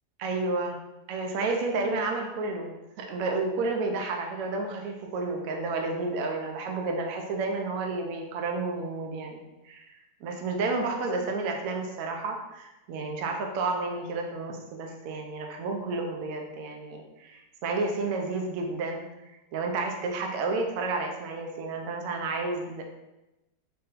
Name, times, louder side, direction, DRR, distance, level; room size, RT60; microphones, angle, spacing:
voice 1, 0.2-0.8 1.1-22.8, right 3 dB, 65° right, 2 dB, 0.9 m, -31 dB
4.1 x 2.2 x 3.6 m, 1.0 s
omnidirectional pair, 1.8 m